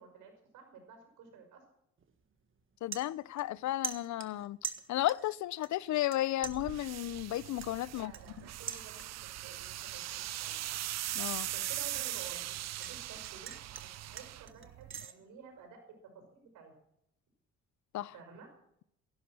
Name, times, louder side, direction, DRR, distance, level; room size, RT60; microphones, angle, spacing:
voice 1, 0.0-1.6 7.9-10.9 11.4-16.7 18.1-18.5, right 6 dB, 90° right, 5.7 m, -53 dB
sound 1, 2.0-2.2 2.6-3.6 3.8-5.3 5.6-6.2 6.4-9.4 9.7-10.1 10.5-12.9 13.2-15.1, right 6 dB, 40° right, 1.6 m, -44 dB
voice 2, 2.8-4.6 4.9-8.1 11.1-11.5 17.9-18.1, left 14 dB, 70° left, 0.6 m, -33 dB
sound 2, 6.4-15.1, right 14 dB, 60° right, 0.5 m, -40 dB
16.0 x 11.5 x 6.2 m
cardioid pair, 90°, 30 cm